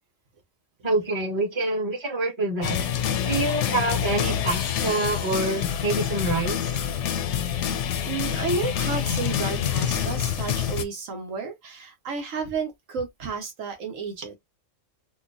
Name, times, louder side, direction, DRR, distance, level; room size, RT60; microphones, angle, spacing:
voice 1, 0.8-2.8 3.2-6.6, right 2 dB, 20° right, 1.3 m, -26 dB
sound 1, 2.6-10.8, left 9 dB, 70° left, 0.9 m, -27 dB
voice 2, 8.0-14.3, right 4 dB, 75° right, 1.3 m, -32 dB
4.3 x 2.4 x 2.5 m
omnidirectional pair, 1.4 m